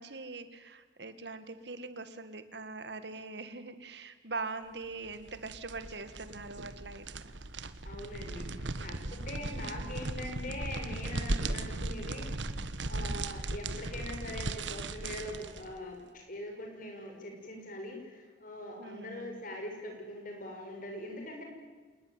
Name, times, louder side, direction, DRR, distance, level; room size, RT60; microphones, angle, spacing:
voice 1, 0.0-7.3 9.0-9.3 12.9-13.4 18.8-19.4, right 3 dB, 65° right, 11 dB, 1.9 m, -42 dB
sound 1, 5.0-15.7, right 2 dB, 85° right, 1.4 m, -37 dB
voice 2, 7.8-12.3 12.9-21.4, left 1 dB, 50° left, 3 dB, 6.6 m, -42 dB
27.5 x 20.0 x 9.6 m, 1.4 s
head